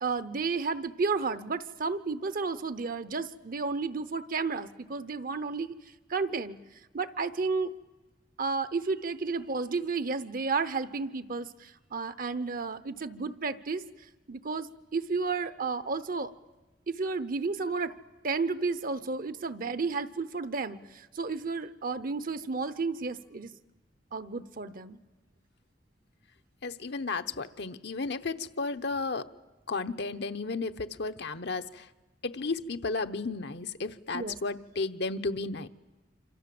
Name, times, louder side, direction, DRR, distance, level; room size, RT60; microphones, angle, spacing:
voice 1, 0.0-5.8 6.1-6.6 6.9-7.7 8.4-13.8 14.3-16.3 16.9-17.9 18.2-23.5 24.1-25.0 34.1-34.3, right 4 dB, 50° right, 13 dB, 0.9 m, -32 dB
voice 2, 26.6-29.3 29.7-31.9 32.2-35.7, left 3 dB, 65° left, 9 dB, 0.9 m, -33 dB
26.5 x 26.5 x 7.8 m, 1.1 s
head